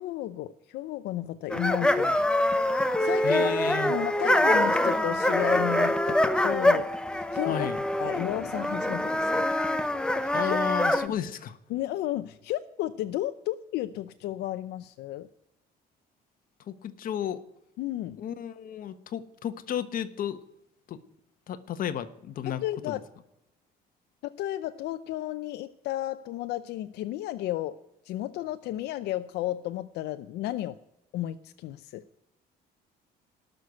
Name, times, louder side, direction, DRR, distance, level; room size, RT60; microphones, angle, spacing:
voice 1, 0.0-2.2 3.0-3.6 3.9-7.7 8.0-9.5 10.4-10.6 11.7-15.3 17.8-18.2 22.5-23.0 24.2-27.8 28.0-30.8 31.1-32.0, left 14 dB, 80° left, 11 dB, 0.6 m, -33 dB
sound 1, 1.5-11.1, left 1 dB, 5° left, 0.8 m, -25 dB
voice 2, 3.2-3.9 7.5-7.8 10.3-11.6 16.7-17.4 18.2-20.4 20.9-21.0 21.5-22.6 22.9-23.0, left 9 dB, 55° left, 10 dB, 1.2 m, -33 dB
17.0 x 6.7 x 9.6 m, 0.88 s
cardioid pair, 110°, 17 cm